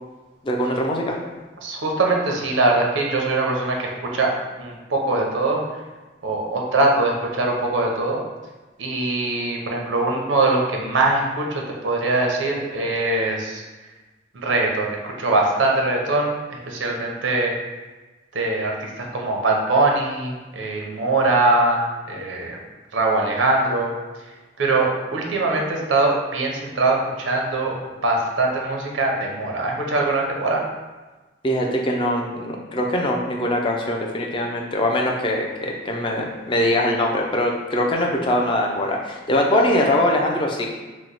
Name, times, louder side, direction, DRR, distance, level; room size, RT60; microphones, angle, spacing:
voice 1, 0.4-1.1 31.4-40.7, left 1 dB, 25° left, 0 dB, 0.3 m, -22 dB
voice 2, 1.6-4.3 4.6-5.6 6.2-8.2 8.8-11.5 11.8-13.6 14.3-17.5 18.3-22.6 22.9-23.9 24.6-27.8 28.0-30.6, right 2 dB, 90° right, 0 dB, 0.6 m, -22 dB
3.0 x 2.0 x 3.9 m, 1.2 s
head